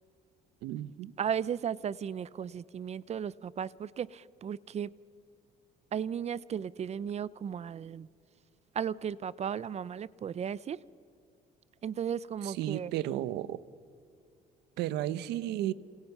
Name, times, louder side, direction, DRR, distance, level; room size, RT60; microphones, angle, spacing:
voice 1, 0.6-1.1 12.4-13.6 14.8-15.7, right 13 dB, 85° right, 17 dB, 1.0 m, -33 dB
voice 2, 1.2-4.9 5.9-8.1 8.7-10.8 11.8-12.9, right 8 dB, 40° right, 20 dB, 0.6 m, -35 dB
29.5 x 27.5 x 6.0 m, 2.3 s
cardioid pair, 110°, 17 cm